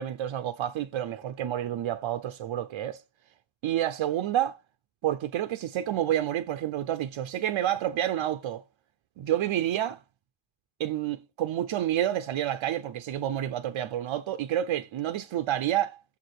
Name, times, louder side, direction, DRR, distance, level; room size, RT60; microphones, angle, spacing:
voice 1, 0.0-3.0 3.6-4.6 5.0-8.6 9.2-10.0 10.8-16.2, right 11 dB, 85° right, 0.7 m, -29 dB
7.2 x 4.8 x 4.3 m
wide cardioid pair, 125°, 46 cm